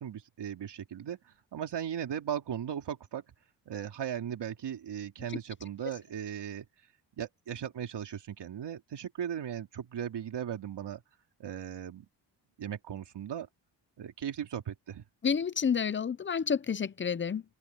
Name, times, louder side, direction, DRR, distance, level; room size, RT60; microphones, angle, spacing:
voice 1, 0.0-3.2 3.7-6.7 7.2-11.0 11.4-12.1 12.6-13.5 14.0-15.0, right 9 dB, 70° right, 3.0 m, -37 dB
voice 2, 15.2-17.4, left 6 dB, 25° left, 0.6 m, -29 dB
open air
wide cardioid pair, 135°, 43 cm